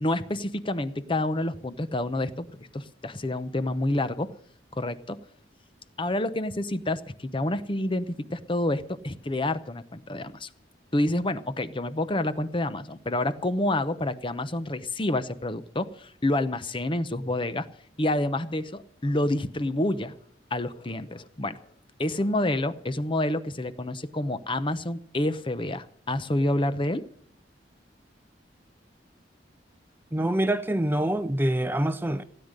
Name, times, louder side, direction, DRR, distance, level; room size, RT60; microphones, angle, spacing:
voice 1, 0.0-4.3 4.7-5.2 6.0-10.5 10.9-17.7 18.0-20.2 20.5-21.6 22.0-27.0, left 1 dB, 30° left, 0.8 m, -28 dB
voice 2, 30.1-32.2, right 1 dB, 10° right, 0.6 m, -25 dB
17.0 x 9.8 x 6.6 m
head